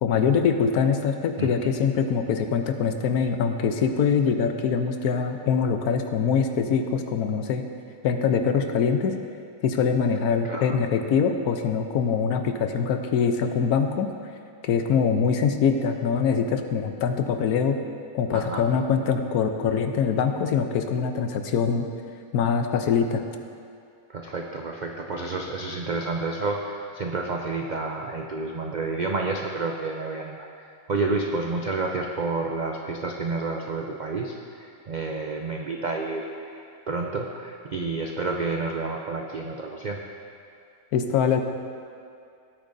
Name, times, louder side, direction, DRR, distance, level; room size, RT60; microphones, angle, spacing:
voice 1, 0.0-7.6 8.0-9.1 9.6-14.1 14.6-17.8 18.1-21.9 22.3-23.2 40.9-41.4, left 6 dB, 80° left, 6 dB, 1.2 m, -23 dB
voice 2, 1.4-1.7 10.4-10.8 18.3-18.6 24.1-30.5 30.9-40.0, right 3 dB, 65° right, 1 dB, 0.4 m, -30 dB
17.5 x 8.7 x 2.6 m, 2.4 s
omnidirectional pair, 1.6 m